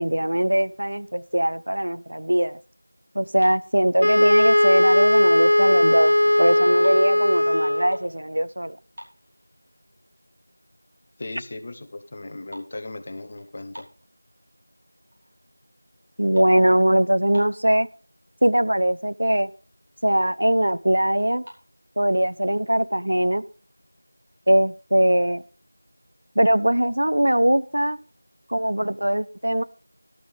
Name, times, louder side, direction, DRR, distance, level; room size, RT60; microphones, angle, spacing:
voice 1, 0.0-2.6 3.1-8.8 16.2-17.9 18.4-19.5 20.0-21.4 22.0-23.4 24.5-25.4 26.4-28.0 28.5-29.6, right 1 dB, 65° right, 0.9 m, -21 dB
sound 1, 3.4-4.6 5.1-5.4 5.7-7.1 7.6-8.2 8.5-8.6 8.9-9.8 10.2-10.3 10.9-11.0 11.2-11.6 11.8-14.6 15.1-15.5 15.8-17.8 18.5-18.6 18.8-19.0 19.5-19.6 19.8-20.5 21.2-21.6, equal, 45° right, 5.0 m, -47 dB
Wind instrument woodwind instrument, 4.0-8.0, left 1 dB, 55° left, 1.2 m, -18 dB
voice 2, 11.2-13.9, left 2 dB, 20° left, 1.0 m, -37 dB
12.5 x 12.0 x 3.5 m
figure-of-eight pair, 175°, 0 cm